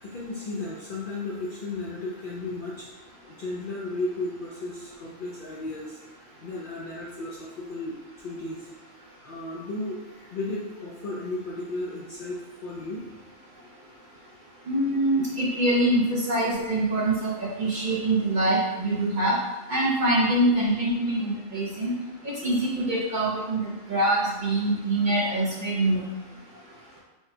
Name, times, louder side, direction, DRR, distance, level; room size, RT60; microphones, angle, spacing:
voice 1, 0.0-2.9 3.3-6.0 6.4-8.7 9.2-13.1, left 2 dB, 60° left, -5 dB, 0.5 m, -34 dB
voice 2, 14.7-19.3 19.7-21.9 22.4-26.0, right 1 dB, 50° right, -5 dB, 0.6 m, -24 dB
4.6 x 2.2 x 2.7 m, 1.1 s
omnidirectional pair, 1.3 m